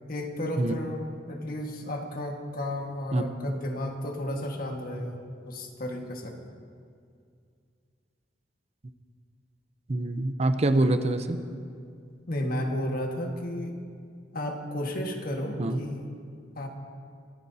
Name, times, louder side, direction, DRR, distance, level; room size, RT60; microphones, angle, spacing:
voice 1, 0.1-5.2 5.4-6.4 12.3-13.8 14.3-16.1 16.6-16.7, left 1 dB, 55° left, 2 dB, 1.6 m, -33 dB
voice 2, 9.9-11.4 15.6-15.8, right 2 dB, 35° right, 8 dB, 0.6 m, -25 dB
24.5 x 15.0 x 2.8 m, 2.3 s
head